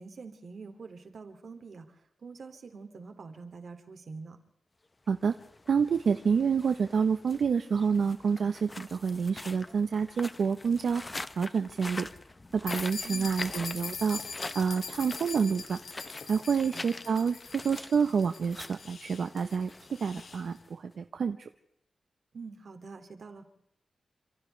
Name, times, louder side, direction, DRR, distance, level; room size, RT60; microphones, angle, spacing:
voice 1, 0.0-4.4 13.0-13.4 16.7-16.8 22.3-23.4, right 4 dB, 55° right, 6 dB, 2.6 m, -45 dB
sound 1, 5.2-20.9, left 2 dB, 20° left, 0.9 m, -45 dB
voice 2, 5.7-11.0 11.4-12.1 12.5-14.2 14.5-15.8 16.2-19.7 20.0-21.5, right 6 dB, 75° right, 8 dB, 1.0 m, -28 dB
sound 2, 12.7-20.4, left 5 dB, 65° left, 1.9 m, -42 dB
sound 3, 13.4-17.9, left 5 dB, 85° left, 2.7 m, -56 dB
29.0 x 27.5 x 3.4 m, 0.76 s
wide cardioid pair, 180°, 0 cm